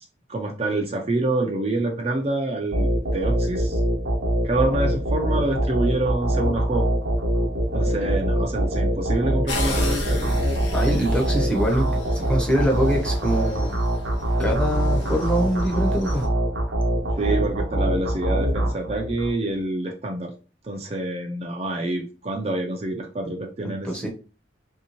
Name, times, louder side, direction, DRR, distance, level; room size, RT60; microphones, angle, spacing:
voice 1, 0.3-3.8 4.4-6.9 7.7-10.3 17.1-20.3 20.6-24.1, right 2 dB, 35° right, 2 dB, 0.5 m, -26 dB
sound 1, 2.7-19.3, right 1 dB, 85° right, 0.9 m, -24 dB
sound 2, 9.5-16.3, left 2 dB, 75° left, 0.9 m, -35 dB
voice 2, 10.7-11.9 12.1-13.8 14.4-16.3 23.6-24.1, equal, 5° left, -1 dB, 0.8 m, -24 dB
3.4 x 2.7 x 2.9 m, 0.34 s
head